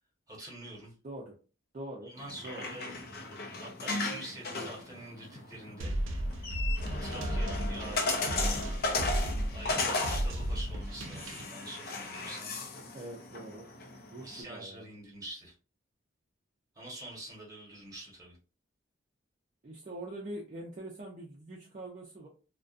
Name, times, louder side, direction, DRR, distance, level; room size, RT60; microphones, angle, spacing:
voice 1, 0.3-0.9 2.0-2.9 3.6-5.9 7.0-8.4 9.5-12.6 14.2-15.5 16.7-18.4, right 1 dB, 20° right, 1.0 m, -45 dB
voice 2, 1.7-2.1 2.4-2.8 12.9-13.7 14.1-14.9 19.6-22.3, right 1 dB, 35° right, 0.4 m, -43 dB
sound 1, 2.2-14.4, left 3 dB, 55° left, 0.5 m, -36 dB
sound 2, 5.8-11.4, right 1 dB, 90° right, 0.5 m, -34 dB
2.3 x 2.1 x 2.4 m
head